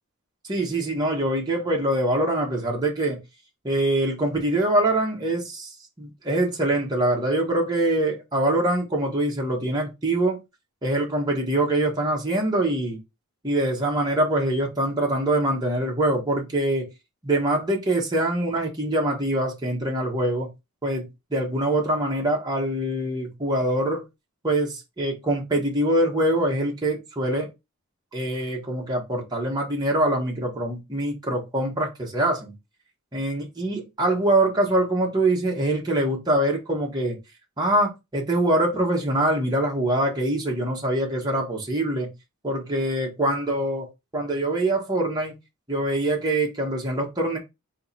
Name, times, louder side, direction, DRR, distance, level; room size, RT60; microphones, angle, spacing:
voice 1, 0.4-3.2 3.6-5.7 6.0-10.4 10.8-13.0 13.4-16.9 17.2-20.5 20.8-24.0 24.4-27.5 28.1-32.5 33.1-37.2 37.6-42.1 42.4-45.4 45.7-47.4, right 1 dB, 20° right, 1.1 m, -24 dB
3.8 x 3.0 x 4.1 m
head